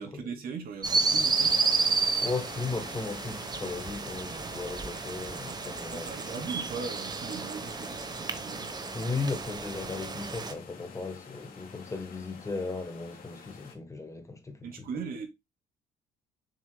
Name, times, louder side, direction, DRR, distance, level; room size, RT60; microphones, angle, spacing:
voice 1, 0.0-1.5 5.9-8.7 14.6-15.3, right 5 dB, 60° right, 2.7 m, -39 dB
sound 1, 0.8-10.5, right 4 dB, 25° right, 1.0 m, -31 dB
sound 2, 1.4-13.8, left 6 dB, 60° left, 2.8 m, -49 dB
voice 2, 2.2-6.2 8.9-14.9, left 3 dB, 20° left, 1.4 m, -36 dB
7.2 x 6.2 x 2.3 m
cardioid pair, 110°, 17 cm